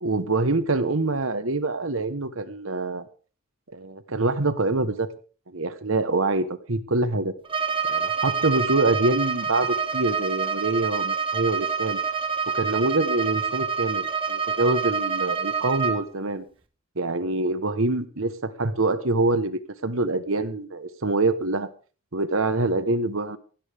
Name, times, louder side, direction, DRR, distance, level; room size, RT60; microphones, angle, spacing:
voice 1, 0.0-3.1 3.7-5.1 5.5-7.3 7.9-12.0 12.5-16.4 17.0-21.7 22.1-23.4, right 2 dB, 70° right, 13 dB, 1.3 m, -25 dB
Bowed string instrument, 7.4-16.0, right 5 dB, 25° right, 1.3 m, -27 dB
17.5 x 16.5 x 3.6 m, 0.37 s
head